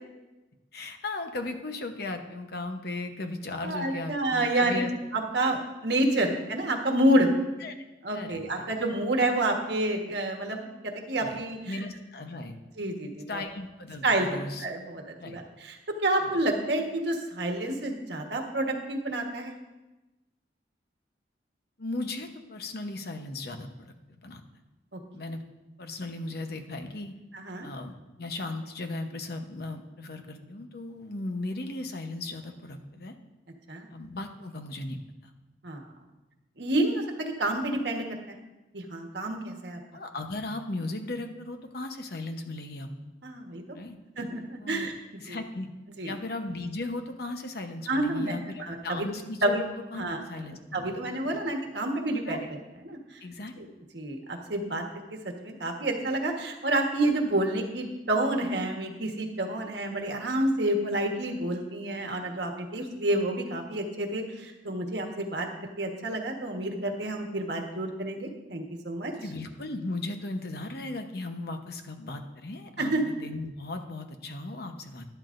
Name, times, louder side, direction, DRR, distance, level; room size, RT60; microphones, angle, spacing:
voice 1, 0.7-4.9 5.4-5.6 7.6-7.7 8.1-8.7 11.2-11.4 11.7-12.6 13.3-14.7 15.2-15.4 16.2-16.3 21.8-24.4 25.1-25.4 25.8-27.1 27.6-33.1 33.9-35.0 39.9-42.9 43.7-44.0 44.6-44.9 45.2-45.7 46.0-51.0 51.3-51.4 52.2-52.5 53.2-53.5 69.2-75.1, left 2 dB, 60° left, 6 dB, 0.9 m, -37 dB
voice 2, 3.6-4.8 5.1-5.6 5.8-7.3 8.0-11.7 12.8-13.4 14.0-19.5 27.3-27.7 33.7-33.9 35.6-35.8 36.6-38.0 38.7-39.8 43.2-43.6 44.2-44.9 45.3-45.4 46.0-46.1 47.9-49.1 49.4-49.6 49.9-50.2 50.7-52.4 52.8-53.0 53.6-53.7 53.9-54.8 55.2-65.5 65.8-69.1 72.8-73.0, right 1 dB, 70° right, 3 dB, 1.4 m, -29 dB
12.0 x 11.5 x 2.6 m, 1.1 s
head